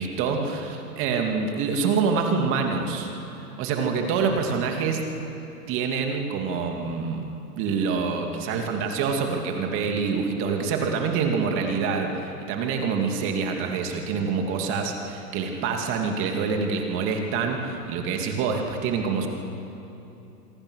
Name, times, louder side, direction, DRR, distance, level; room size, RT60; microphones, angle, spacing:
voice 1, 0.0-3.1 3.6-5.0 5.7-7.2 7.6-19.3, right 5 dB, 25° right, 3 dB, 2.5 m, -26 dB
25.5 x 23.0 x 6.5 m, 2.9 s
hypercardioid pair, 140°, 48 cm